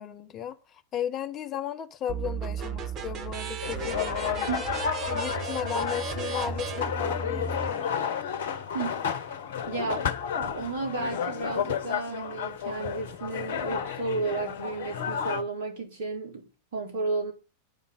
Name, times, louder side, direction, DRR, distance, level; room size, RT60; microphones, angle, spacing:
voice 1, 0.0-4.5 5.1-7.9, left 9 dB, 30° left, 0.9 m, -35 dB
sound 1, 2.1-7.7, right 5 dB, 30° right, 1.1 m, -34 dB
sound 2, 3.6-15.4, left 7 dB, 55° left, 1.0 m, -32 dB
voice 2, 8.7-9.0 9.7-10.1 10.4-17.3, right 3 dB, 55° right, 3.9 m, -33 dB
9.0 x 5.5 x 8.1 m
figure-of-eight pair, 90°, 0 cm